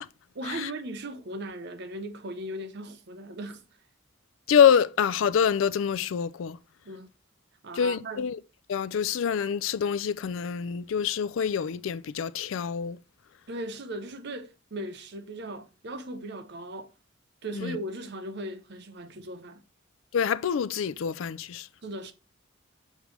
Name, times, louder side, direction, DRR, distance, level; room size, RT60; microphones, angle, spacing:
voice 1, 0.3-3.7 6.8-7.1 7.6-8.3 13.5-16.9 17.4-19.6 21.8-22.1, right 1 dB, 50° right, 0.7 m, -38 dB
voice 2, 4.5-6.6 7.8-8.4 8.7-13.0 17.5-17.8 20.1-21.7, left 7 dB, 65° left, 0.3 m, -26 dB
6.6 x 3.1 x 4.8 m
head